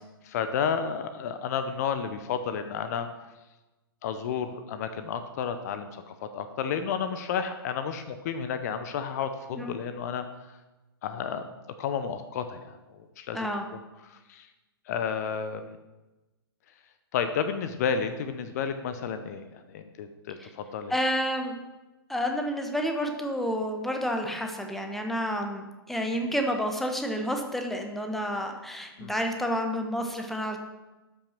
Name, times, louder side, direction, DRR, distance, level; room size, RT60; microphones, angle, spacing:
voice 1, 0.2-3.1 4.0-10.3 11.0-11.4 11.8-12.8 13.2-13.4 14.1-14.5 14.9-15.8 17.1-20.9 29.0-29.1, left 7 dB, 40° left, 9 dB, 0.8 m, -31 dB
voice 2, 13.3-13.7 20.4-20.5 20.9-21.5 22.1-30.6, equal, ahead, 4 dB, 1.2 m, -30 dB
13.0 x 5.9 x 6.0 m, 1.1 s
figure-of-eight pair, 115°, 13 cm